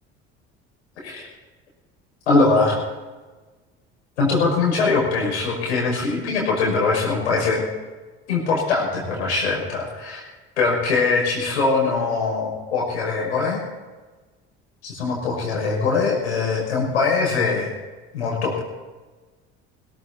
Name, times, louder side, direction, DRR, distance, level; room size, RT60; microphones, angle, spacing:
voice 1, 2.3-2.8 4.2-7.6 8.3-10.2 10.6-13.6 14.8-17.7 18.1-18.6, left 4 dB, 90° left, -3 dB, 5.7 m, -22 dB
17.5 x 17.5 x 4.1 m, 1.3 s
hypercardioid pair, 65°, 32 cm